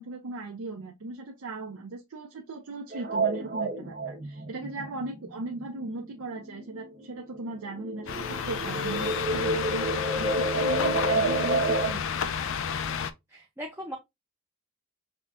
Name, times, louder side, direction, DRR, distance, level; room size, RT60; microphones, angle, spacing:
voice 1, 0.0-12.1, right 3 dB, 85° right, 0.6 m, -38 dB
sound 1, 2.9-7.0 7.3-11.9, right 2 dB, 40° right, 1.2 m, -29 dB
sound 2, 8.1-13.1, left 7 dB, 65° left, 0.4 m, -31 dB
voice 2, 13.3-14.0, equal, 10° right, 0.5 m, -38 dB
5.6 x 2.2 x 2.4 m
head